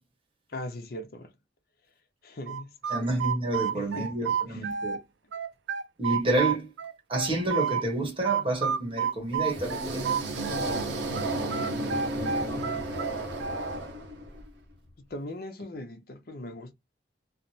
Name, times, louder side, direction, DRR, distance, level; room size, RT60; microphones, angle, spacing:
voice 1, 0.5-1.4 2.2-3.1 3.7-4.7 12.5-13.0 15.0-16.7, left 1 dB, 55° left, 0.7 m, -40 dB
sound 1, 2.5-5.0 5.3-7.8 8.2-10.8 11.1-13.8, right 7 dB, 80° right, 0.4 m, -30 dB
voice 2, 2.9-5.0 6.0-6.7 7.1-10.0, right 2 dB, 30° right, 1.0 m, -29 dB
sound 2, 9.3-14.5, right 1 dB, 65° right, 0.8 m, -33 dB
3.1 x 2.0 x 2.7 m
head